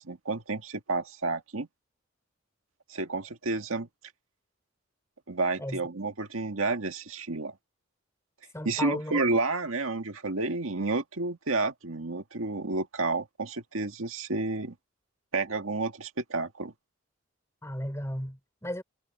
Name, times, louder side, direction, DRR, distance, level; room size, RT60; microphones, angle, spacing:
voice 1, 0.0-1.7 2.9-3.9 5.3-7.5 8.7-14.8 15.3-16.7, right 3 dB, 90° right, 1.9 m, -30 dB
voice 2, 8.5-9.2 17.6-18.8, left 1 dB, 15° left, 4.2 m, -35 dB
head